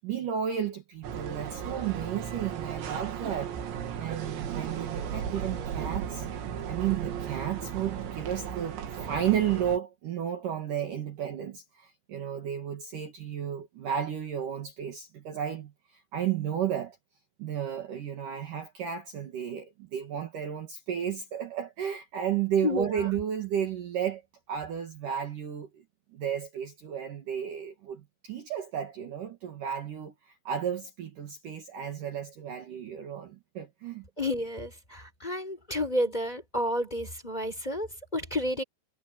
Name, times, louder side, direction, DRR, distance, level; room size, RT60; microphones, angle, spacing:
voice 1, 0.0-3.6 4.0-6.3 6.7-8.8 9.0-17.0 17.4-24.2 24.5-25.8 26.1-34.1, right 9 dB, 55° right, 3.0 m, -33 dB
sound 1, 1.0-9.8, right 8 dB, 85° right, 4.7 m, -35 dB
voice 2, 22.6-23.2 34.2-38.6, left 1 dB, 10° left, 4.6 m, -31 dB
omnidirectional pair, 5.1 m